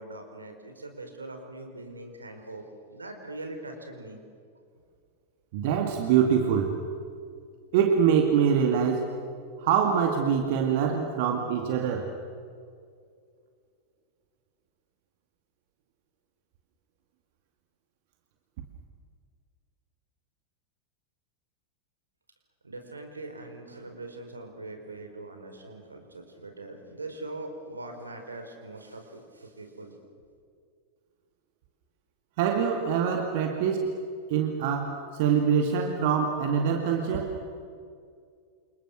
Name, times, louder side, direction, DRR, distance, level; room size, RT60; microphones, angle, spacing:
voice 1, 0.0-4.2 22.6-30.0, right 2 dB, 80° right, 5 dB, 4.9 m, -42 dB
voice 2, 5.5-6.8 7.7-9.2 9.6-12.1 32.4-34.0 34.3-37.4, right 7 dB, 50° right, 4 dB, 2.3 m, -24 dB
29.0 x 28.5 x 6.5 m, 2.3 s
figure-of-eight pair, 90°, 0 cm